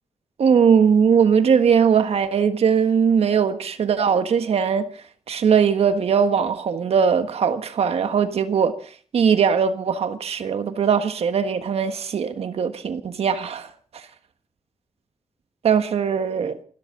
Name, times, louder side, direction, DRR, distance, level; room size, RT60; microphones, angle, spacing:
voice 1, 0.4-4.9 5.3-8.7 9.1-14.0 15.6-16.6, right 7 dB, 65° right, 1.5 m, -20 dB
28.0 x 13.0 x 3.8 m
wide cardioid pair, 175°, 11 cm